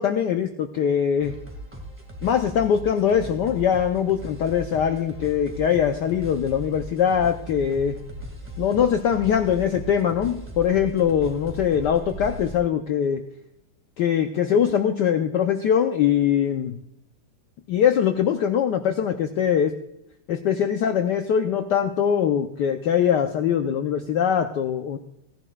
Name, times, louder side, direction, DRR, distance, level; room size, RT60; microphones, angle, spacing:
voice 1, 0.0-1.3 2.2-8.0 8.6-13.2 14.0-16.8 17.7-19.7 20.3-25.0, left 8 dB, 70° left, 6 dB, 1.1 m, -22 dB
sound 1, 1.2-12.6, right 1 dB, 5° right, 1.6 m, -38 dB
16.5 x 11.0 x 2.3 m, 0.79 s
omnidirectional pair, 2.3 m